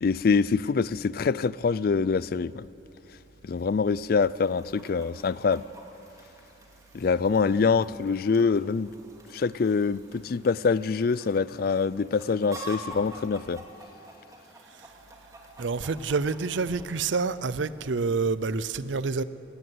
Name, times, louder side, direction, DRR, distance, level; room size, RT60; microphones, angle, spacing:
voice 1, 0.0-2.6 3.4-5.6 6.9-8.9 9.3-13.6, left 5 dB, 55° left, 20 dB, 0.4 m, -25 dB
Chicken rooster, 4.2-17.2, right 1 dB, 20° right, 2.2 m, -48 dB
voice 2, 15.6-19.2, right 4 dB, 85° right, 16 dB, 0.6 m, -28 dB
18.0 x 15.5 x 9.5 m, 2.9 s
head